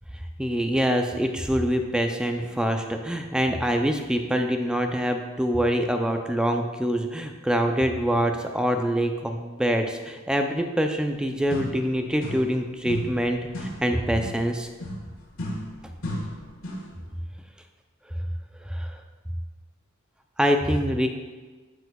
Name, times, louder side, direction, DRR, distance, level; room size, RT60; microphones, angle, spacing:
voice 1, 0.4-14.7 18.7-19.0 20.4-21.1, equal, 5° right, 5 dB, 0.3 m, -25 dB
sound 1, 11.2-11.3 11.5-12.6 12.8-17.0, left 1 dB, 80° left, 1.5 m, -35 dB
8.1 x 6.7 x 2.3 m, 1.4 s
head